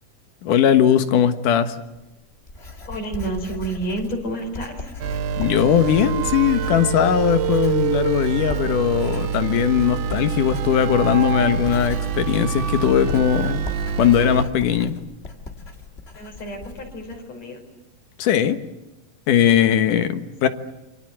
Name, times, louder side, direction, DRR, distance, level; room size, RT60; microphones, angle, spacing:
voice 1, 0.4-1.7 5.4-13.6 14.0-14.9 18.2-18.6 19.3-20.5, left 9 dB, 85° left, 10 dB, 3.0 m, -19 dB
Writing, 2.0-17.2, left 3 dB, 20° left, 2.3 m, -39 dB
voice 2, 2.9-4.9 16.2-17.6 19.8-20.1, right 2 dB, 55° left, 4 dB, 6.0 m, -30 dB
sound 1, 5.0-14.5, right 7 dB, 70° right, 2.7 m, -25 dB
28.0 x 25.0 x 7.7 m, 0.99 s
omnidirectional pair, 3.6 m